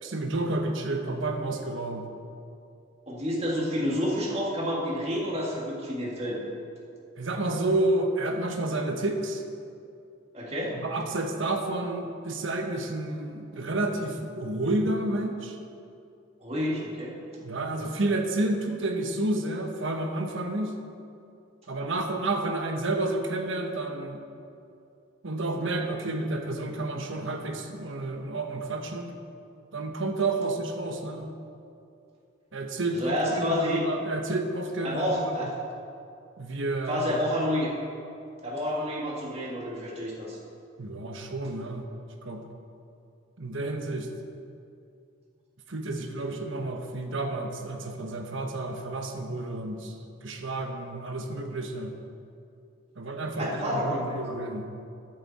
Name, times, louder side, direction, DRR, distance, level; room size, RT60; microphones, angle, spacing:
voice 1, 0.0-2.1 7.2-9.4 10.7-15.6 17.4-20.8 21.7-24.2 25.2-29.1 29.7-31.3 32.5-35.5 36.4-37.1 40.8-41.9 42.2-42.4 43.4-44.1 45.7-49.9 50.2-51.9 53.0-54.7, right 2 dB, 70° right, 4 dB, 1.1 m, -30 dB
voice 2, 3.1-6.4 10.3-10.8 16.4-17.1 32.9-33.8 34.8-35.5 36.9-37.7 38.4-40.4 53.4-54.2, equal, 30° right, -3 dB, 2.0 m, -29 dB
14.5 x 10.5 x 4.2 m, 2.6 s
head